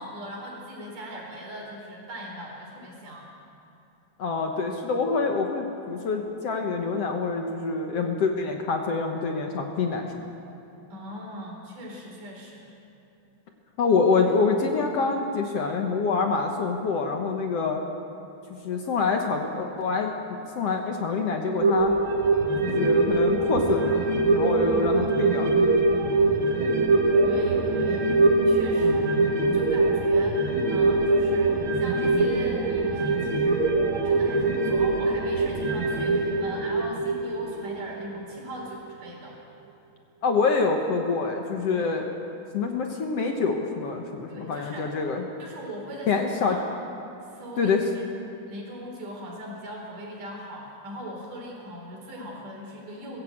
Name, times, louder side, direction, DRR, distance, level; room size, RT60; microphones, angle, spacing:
voice 1, 0.0-3.3 10.9-12.7 24.6-25.4 27.1-28.1 28.5-33.7 34.0-39.4 41.7-41.9 44.3-44.9 45.4-46.6 47.2-48.1 48.5-53.2, equal, 75° right, -1 dB, 5.6 m, -40 dB
voice 2, 4.2-10.1 13.8-17.8 18.5-20.2 20.6-22.0 22.6-24.1 24.3-25.5 26.0-26.3 28.8-29.2 40.2-42.1 42.5-45.2 46.1-46.6 47.6-47.9, left 4 dB, 60° left, 3 dB, 1.9 m, -26 dB
sound 1, 21.6-38.4 38.7-38.8, right 2 dB, 45° right, 2.0 m, -23 dB
20.0 x 15.0 x 8.6 m, 2.9 s
omnidirectional pair, 3.8 m